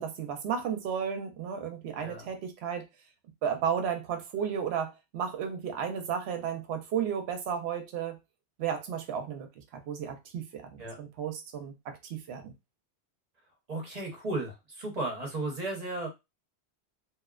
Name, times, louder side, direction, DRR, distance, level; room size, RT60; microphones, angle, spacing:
voice 1, 0.0-2.8 3.4-8.2 8.6-9.5 9.7-12.5, right 7 dB, 70° right, 0.8 m, -33 dB
voice 2, 2.0-2.3 10.8-11.0 13.7-16.1, right 2 dB, 40° right, 0.8 m, -35 dB
2.5 x 2.1 x 2.3 m
omnidirectional pair, 1.1 m